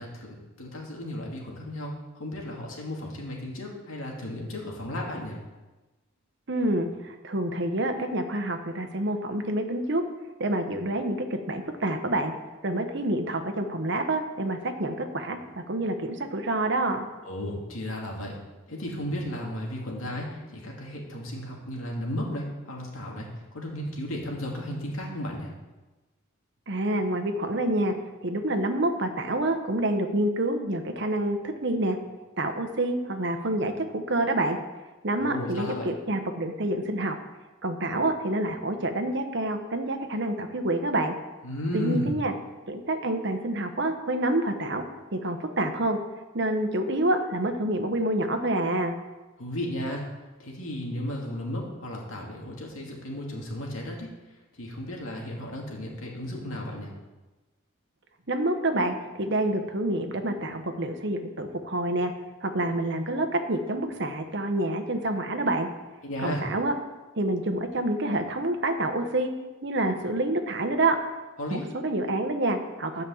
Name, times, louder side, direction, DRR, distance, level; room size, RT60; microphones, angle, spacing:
voice 1, 0.0-5.4 17.2-18.4 18.7-23.3 23.5-25.5 35.2-35.9 41.4-42.2 49.4-54.1 54.5-56.9 66.0-66.4 71.4-71.6, left 1 dB, 80° left, -1 dB, 2.3 m, -34 dB
voice 2, 6.5-10.0 10.4-12.3 12.6-15.4 15.7-17.1 26.7-27.9 28.2-32.0 32.4-34.6 35.0-37.2 37.6-41.1 41.7-42.3 42.7-44.9 45.1-46.0 46.3-48.9 58.3-62.1 62.4-65.7 66.2-66.7 67.2-69.3 69.6-71.0 71.5-73.0, right 1 dB, 55° right, 6 dB, 1.0 m, -27 dB
10.5 x 5.4 x 7.1 m, 1.2 s
head